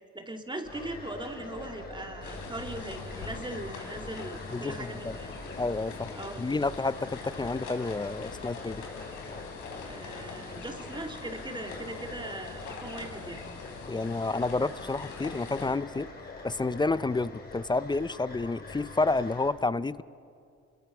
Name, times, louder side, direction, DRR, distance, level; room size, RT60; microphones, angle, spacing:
voice 1, 0.1-5.3 6.1-6.4 9.9-13.5, right 2 dB, 15° right, 4 dB, 2.3 m, -40 dB
sound 1, 0.6-19.5, left 3 dB, 30° left, 4.2 m, -44 dB
sound 2, 2.2-15.7, left 4 dB, 85° left, 3.2 m, -44 dB
voice 2, 4.5-5.1 5.6-8.8 13.9-16.1 16.4-20.0, left 3 dB, 15° left, 17 dB, 0.4 m, -30 dB
28.5 x 21.0 x 6.0 m, 2.4 s
cardioid pair, 90°, 30 cm